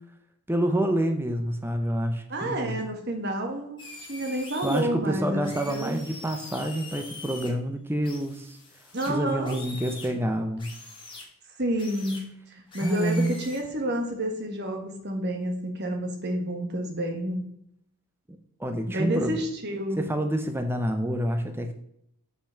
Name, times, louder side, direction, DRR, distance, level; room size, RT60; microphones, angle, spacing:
voice 1, 0.5-2.8 4.6-8.6 9.1-10.7 12.8-13.4 18.6-19.4 20.0-21.7, right 1 dB, 10° right, 6 dB, 0.6 m, -27 dB
voice 2, 2.3-3.8 4.1-6.0 8.9-9.6 11.6-17.5 18.9-20.1, right 1 dB, 50° right, 4 dB, 1.6 m, -30 dB
sound 1, 3.8-4.8 5.4-7.5 8.0-10.1 10.6-11.2 11.8-12.2 12.7-13.6, left 3 dB, 20° left, 2.3 m, -43 dB
6.7 x 5.9 x 5.8 m, 0.75 s
head